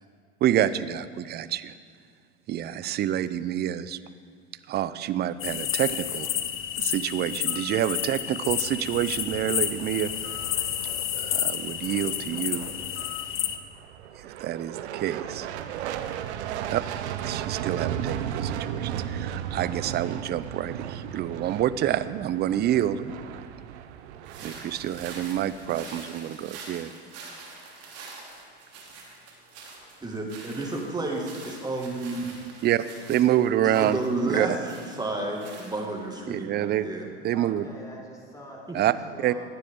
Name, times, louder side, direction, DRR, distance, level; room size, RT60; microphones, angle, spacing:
voice 1, 0.4-1.7 2.5-4.0 4.7-6.3 6.8-10.1 11.2-12.6 14.2-15.5 16.7-16.8 17.2-23.2 24.4-26.9 32.6-34.0 34.3-34.5 36.3-36.9 37.2-37.7 38.7-38.9 39.2-39.3, right 12 dB, 30° right, 15 dB, 0.5 m, -27 dB
sound 1, 5.4-13.6, left 11 dB, 35° left, 0.9 m, -30 dB
sound 2, 8.6-25.8, right 9 dB, 75° right, 0.8 m, -36 dB
sound 3, 24.2-36.2, right 3 dB, 45° right, 3.0 m, -45 dB
voice 2, 30.0-32.4 33.6-37.1 38.7-38.8, right 2 dB, 10° right, 0 dB, 2.1 m, -31 dB
voice 3, 37.3-39.4, equal, 10° left, -2 dB, 3.9 m, -44 dB
17.0 x 9.8 x 3.7 m, 2.1 s
hypercardioid pair, 95°, 34 cm